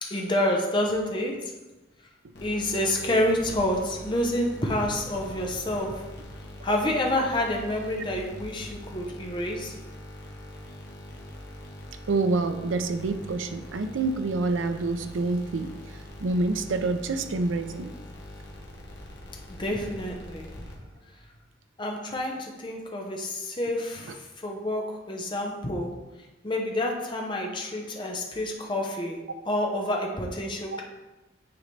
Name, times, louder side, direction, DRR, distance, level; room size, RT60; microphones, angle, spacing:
voice 1, 0.0-1.5 2.4-6.1 6.6-9.7 19.5-20.7 21.8-25.9 26.4-30.8, left 1 dB, 25° left, 1 dB, 0.9 m, -28 dB
sound 1, 2.3-21.1, left 1 dB, 65° left, 1.2 m, -43 dB
voice 2, 12.1-17.9 24.1-24.2 30.7-30.8, right 3 dB, 85° right, 8 dB, 0.5 m, -27 dB
9.4 x 3.9 x 3.3 m, 1.1 s
head